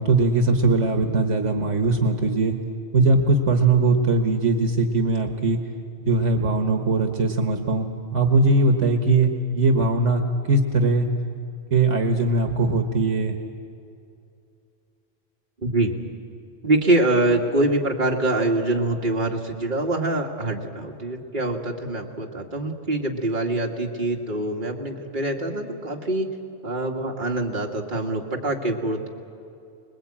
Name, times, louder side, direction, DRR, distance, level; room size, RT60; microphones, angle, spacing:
voice 1, 0.0-2.6 2.9-5.6 6.0-11.1 11.7-13.3, right 3 dB, 70° right, 5 dB, 1.6 m, -20 dB
voice 2, 15.6-15.9 16.6-26.3 26.6-29.1, right 2 dB, 40° right, 0 dB, 2.2 m, -24 dB
25.0 x 21.0 x 8.7 m, 2.5 s
omnidirectional pair, 1.3 m